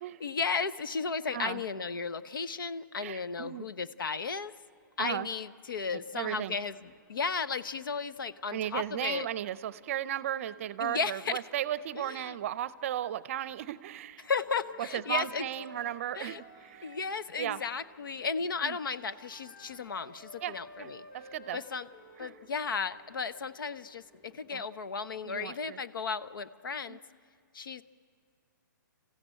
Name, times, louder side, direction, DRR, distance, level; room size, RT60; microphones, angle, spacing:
voice 1, 0.2-4.5 5.0-9.3 10.8-11.4 11.9-12.4 14.2-15.5 16.1-16.4 16.8-21.1 21.5-21.9 22.2-27.0 27.5-27.8, left 5 dB, 85° left, 14 dB, 0.9 m, -34 dB
voice 2, 3.0-3.7 5.0-5.3 6.1-6.6 8.5-14.3 14.8-17.0 17.4-17.6 18.6-18.8 20.4-21.6 22.2-22.4 24.5-24.6 25.2-25.8 26.9-27.0, right 11 dB, 40° right, 17 dB, 0.6 m, -35 dB
sound 1, 4.6-24.5, right 4 dB, 5° left, 6.2 m, -67 dB
Wind instrument woodwind instrument, 14.3-17.8 18.6-22.4, left 2 dB, 35° left, 5.4 m, -52 dB
28.5 x 15.0 x 9.0 m, 2.2 s
hypercardioid pair, 160°, 11 cm